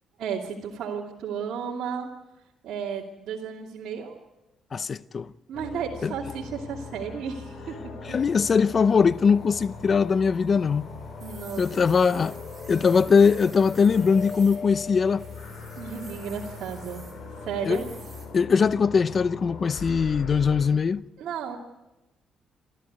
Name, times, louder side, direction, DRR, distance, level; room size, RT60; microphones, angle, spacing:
voice 1, 0.2-2.1 2.6-4.2 5.5-8.2 11.2-11.8 15.8-17.0 17.4-17.9 21.2-21.6, right 7 dB, 75° right, 2.7 m, -33 dB
voice 2, 4.7-5.3 6.0-6.1 8.0-10.9 11.6-12.4 12.7-15.2 17.6-17.8 18.3-21.0, left 5 dB, 45° left, 0.7 m, -21 dB
sound 1, 5.5-20.7, left 4 dB, 65° left, 6.7 m, -40 dB
sound 2, 8.5-18.3, right 4 dB, 30° right, 6.3 m, -50 dB
27.5 x 13.5 x 9.5 m
cardioid pair, 90°, 0 cm